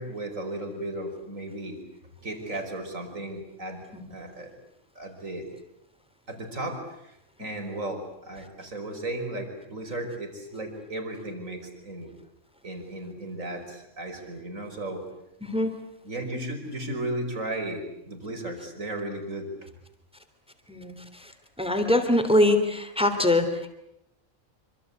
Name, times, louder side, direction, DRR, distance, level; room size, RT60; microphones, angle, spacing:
voice 1, 0.0-1.8 2.2-3.8 4.1-4.5 5.0-5.5 6.3-7.1 7.4-12.1 12.6-15.0 16.0-19.7, right 1 dB, 85° right, 4 dB, 5.6 m, -35 dB
voice 2, 15.4-15.7 20.7-21.0 21.6-23.7, left 1 dB, 5° right, 6 dB, 3.1 m, -23 dB
26.5 x 25.5 x 8.3 m, 0.82 s
omnidirectional pair, 1.3 m